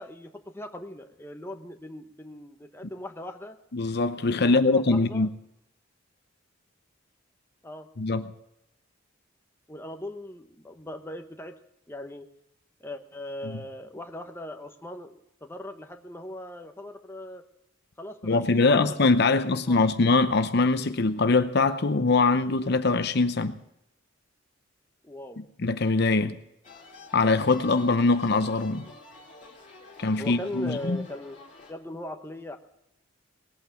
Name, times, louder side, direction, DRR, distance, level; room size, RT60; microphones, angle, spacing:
voice 1, 0.0-3.6 4.4-5.3 7.6-7.9 9.7-11.5 11.9-12.3 12.8-17.4 18.0-19.0 19.3-19.8 25.0-25.5 30.2-31.4 31.7-32.6, left 1 dB, 10° left, 1.0 m, -39 dB
voice 2, 3.7-5.3 8.0-8.3 18.2-23.6 25.6-26.4 27.1-28.8 30.0-31.0, left 3 dB, 55° left, 0.8 m, -23 dB
sound 1, 26.6-31.7, left 2 dB, 35° left, 2.9 m, -49 dB
19.0 x 8.7 x 7.6 m
head